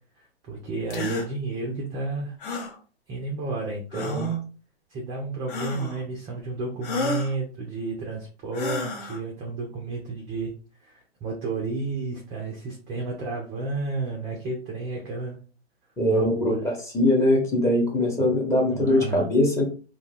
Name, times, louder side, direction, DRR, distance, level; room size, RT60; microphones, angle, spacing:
voice 1, 0.5-2.4 3.1-4.4 4.9-10.5 10.8-15.4 16.1-16.6 18.7-19.3, right 3 dB, 15° right, -1 dB, 0.3 m, -31 dB
sound 1, 0.9-1.3 2.4-2.8 3.9-4.4 5.5-6.0 6.8-7.3 8.5-9.2, left 3 dB, 50° left, 0.7 m, -31 dB
voice 2, 3.9-4.3 16.0-19.6, left 1 dB, 10° left, -2 dB, 0.8 m, -22 dB
2.2 x 2.1 x 3.3 m, 0.38 s
hypercardioid pair, 115°, 33 cm